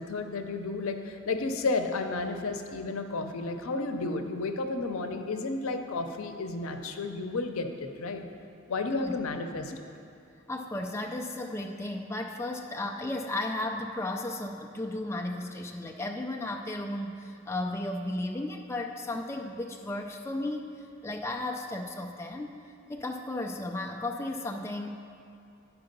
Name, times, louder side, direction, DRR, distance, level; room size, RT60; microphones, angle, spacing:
voice 1, 0.0-8.2 8.7-9.8, left 3 dB, 85° left, 6 dB, 0.6 m, -32 dB
voice 2, 10.5-22.5 22.9-24.9, left 1 dB, 10° left, 2 dB, 0.3 m, -34 dB
10.5 x 4.7 x 5.2 m, 2.5 s
head